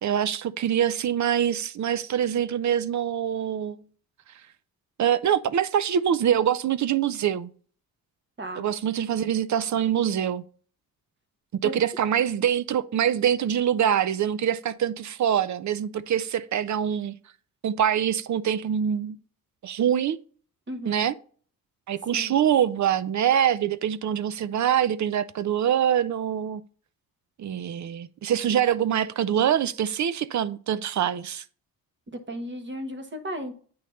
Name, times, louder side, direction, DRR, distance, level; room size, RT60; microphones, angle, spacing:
voice 1, 0.0-3.8 5.0-7.5 8.6-10.4 11.5-17.2 17.6-19.2 19.6-20.2 20.8-21.1 21.9-26.6 27.4-31.4, right 9 dB, 50° right, 0.5 m, -24 dB
voice 2, 20.7-21.1 22.1-22.3 32.1-33.5, equal, 30° right, 1.3 m, -35 dB
8.6 x 3.1 x 5.6 m
cardioid pair, 90°, 37 cm